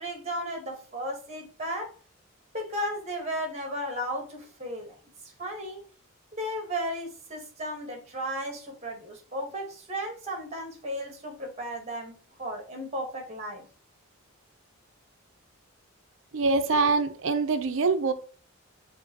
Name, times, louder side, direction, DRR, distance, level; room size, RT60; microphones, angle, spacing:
voice 1, 0.0-1.9 2.5-5.0 5.4-5.8 6.3-13.6, equal, 30° right, 1.2 m, -34 dB
voice 2, 16.3-18.1, right 4 dB, 60° right, 0.5 m, -24 dB
5.6 x 2.6 x 2.8 m
head